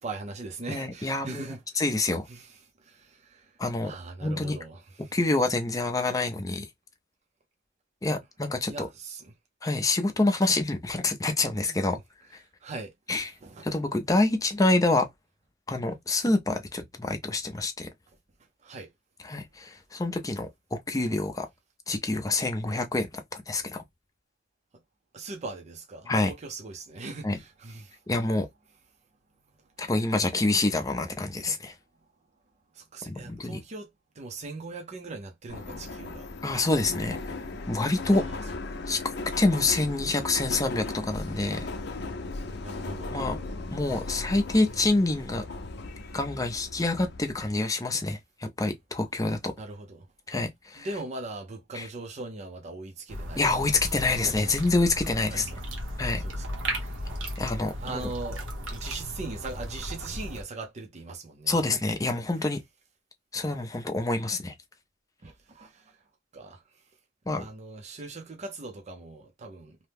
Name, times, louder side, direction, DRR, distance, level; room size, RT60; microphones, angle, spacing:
voice 1, 0.0-1.8 2.3-5.2 8.7-9.3 12.6-13.7 18.6-18.9 25.1-28.0 32.7-33.9 34.2-36.3 38.0-38.4 38.7-38.8 42.6-43.2 49.6-50.1 50.8-53.8 54.1-54.5 55.3-55.6 56.2-57.1 57.8-61.6 65.2-66.0 66.3-66.8 67.4-69.8, right 3 dB, 35° right, 0.5 m, -40 dB
voice 2, 0.7-2.3 3.6-3.9 4.2-4.6 5.1-6.6 8.0-8.9 9.6-12.0 13.1-13.3 13.6-15.1 15.7-17.9 19.2-21.5 21.9-23.8 26.1-26.3 27.2-27.4 28.1-28.5 29.8-31.7 33.0-33.6 36.4-37.2 37.7-38.2 38.9-41.7 43.1-43.4 43.7-45.5 46.1-49.5 50.3-50.9 51.7-51.9 53.4-55.5 56.0-56.2 57.4-58.0 61.5-62.6 63.3-64.5 67.3-67.5, left 2 dB, 20° left, 0.5 m, -27 dB
Subway metro underground, 35.5-47.5, left 3 dB, 60° left, 0.6 m, -37 dB
sound 1, 53.1-60.4, equal, 90° right, 1.0 m, -35 dB
2.8 x 2.1 x 3.3 m
head